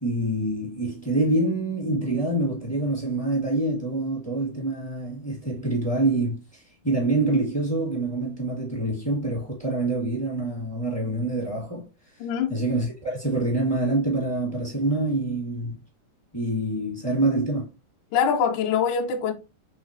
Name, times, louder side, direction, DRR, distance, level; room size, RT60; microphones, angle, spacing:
voice 1, 0.0-15.8 16.3-17.7, right 2 dB, 25° left, 0.5 m, -26 dB
voice 2, 12.2-12.5 18.1-19.3, left 7 dB, 80° left, 1.8 m, -23 dB
5.6 x 3.1 x 2.8 m
omnidirectional pair, 4.3 m